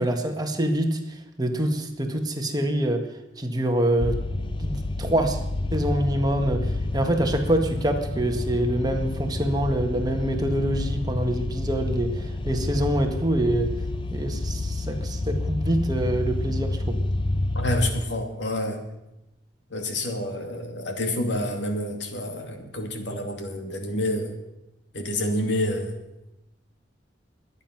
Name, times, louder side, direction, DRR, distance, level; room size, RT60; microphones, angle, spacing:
voice 1, 0.0-3.1 3.4-4.2 4.6-5.4 5.7-13.7 14.1-17.0, right 1 dB, 20° right, 4 dB, 1.7 m, -25 dB
sound 1, 4.0-17.9, left 2 dB, 25° left, 0.6 m, -29 dB
voice 2, 17.5-18.8 19.7-24.4 24.9-26.0, left 1 dB, 70° left, 4 dB, 2.4 m, -28 dB
23.0 x 9.6 x 6.0 m, 0.92 s
head